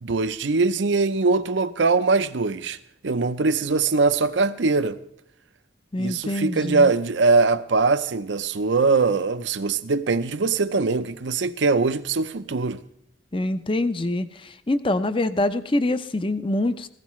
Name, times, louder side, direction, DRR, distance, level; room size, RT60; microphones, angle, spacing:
voice 1, 0.0-2.8 3.0-5.0 6.0-12.8, right 4 dB, 70° right, 0.6 m, -22 dB
voice 2, 5.9-6.9 13.3-14.3 14.7-16.9, left 1 dB, 25° left, 0.6 m, -24 dB
16.5 x 15.5 x 3.1 m
head